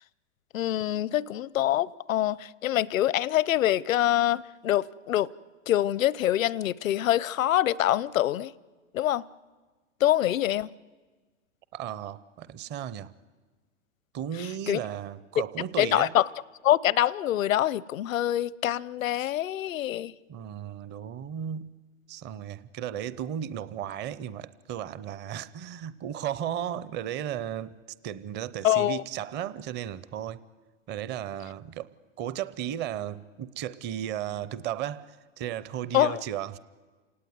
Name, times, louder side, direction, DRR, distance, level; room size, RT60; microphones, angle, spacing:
voice 1, 0.5-5.3 5.7-8.5 8.9-9.2 10.0-10.7 14.7-14.8 15.8-16.3 16.6-20.1 28.6-29.0 35.9-36.2, left 13 dB, 80° left, 0.7 m, -25 dB
voice 2, 11.7-13.1 14.1-16.1 20.3-21.8 22.1-27.8 28.0-30.4 30.9-31.9 32.2-36.6, right 10 dB, 25° right, 0.7 m, -35 dB
28.5 x 18.5 x 9.5 m
hypercardioid pair, 120°, 39 cm